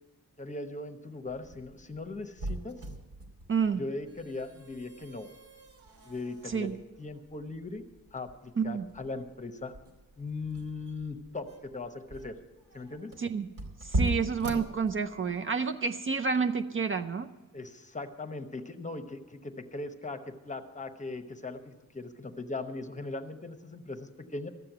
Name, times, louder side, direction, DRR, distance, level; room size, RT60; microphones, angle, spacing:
voice 1, 0.4-2.8 3.8-5.3 6.0-7.8 8.1-9.7 10.2-12.4 12.7-13.1 17.5-24.5, left 3 dB, 20° left, 8 dB, 0.9 m, -39 dB
sound 1, 1.4-15.4, right 1 dB, 65° right, 2.6 m, -39 dB
voice 2, 3.5-3.8 6.4-6.8 8.6-8.9 13.2-13.5 13.8-17.3, right 5 dB, 35° right, 7 dB, 0.5 m, -29 dB
13.5 x 7.7 x 8.9 m, 1.2 s
wide cardioid pair, 140°, 35 cm